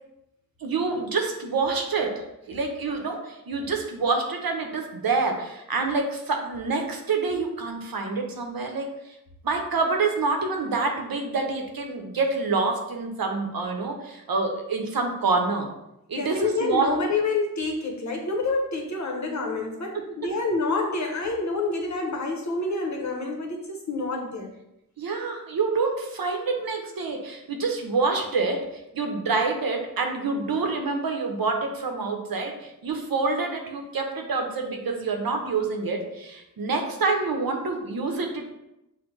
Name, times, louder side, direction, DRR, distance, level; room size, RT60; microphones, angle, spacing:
voice 1, 0.6-8.9 9.4-15.7 16.1-16.9 19.9-20.0 25.0-28.6 28.9-38.5, right 4 dB, 80° right, 3 dB, 0.8 m, -27 dB
voice 2, 16.2-24.6, left 3 dB, 50° left, 1 dB, 0.9 m, -28 dB
6.1 x 2.2 x 3.2 m, 0.88 s
wide cardioid pair, 75°, 35 cm